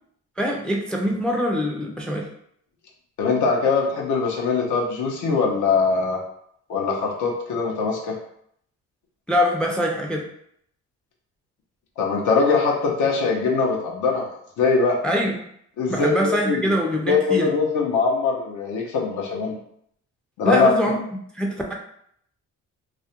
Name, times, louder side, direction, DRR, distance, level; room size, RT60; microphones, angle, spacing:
voice 1, 0.4-2.3 9.3-10.3 15.0-15.4 15.9-17.5 20.4-21.0 21.3-21.7, equal, 5° left, 0 dB, 0.3 m, -23 dB
voice 2, 3.2-6.2 6.7-8.2 12.0-14.3 14.6-15.0 15.8-16.6 17.1-19.6 20.4-20.7, left 4 dB, 75° left, 0 dB, 0.6 m, -22 dB
2.4 x 2.0 x 2.8 m, 0.69 s
cardioid pair, 90°, 30 cm